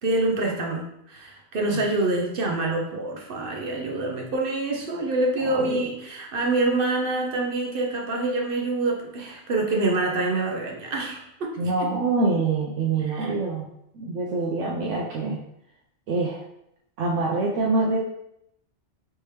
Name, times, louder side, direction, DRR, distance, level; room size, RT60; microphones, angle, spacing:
voice 1, 0.0-11.9 13.1-13.3, right 2 dB, 55° right, 0 dB, 0.8 m, -26 dB
voice 2, 5.4-5.8 11.6-13.7 13.9-15.4 16.1-16.4 17.0-18.0, right 3 dB, 85° right, -3 dB, 0.9 m, -25 dB
3.3 x 2.9 x 3.2 m, 0.78 s
omnidirectional pair, 1.2 m